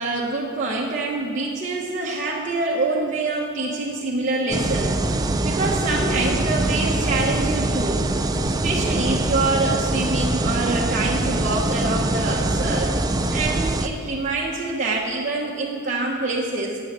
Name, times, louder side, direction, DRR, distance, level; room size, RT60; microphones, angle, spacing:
voice 1, 0.0-8.0 8.5-13.0 13.3-16.8, right 2 dB, 35° right, -4 dB, 1.0 m, -25 dB
sound 1, 4.5-13.9, right 2 dB, 20° right, 0.4 m, -23 dB
9.2 x 8.4 x 7.5 m, 2.2 s
head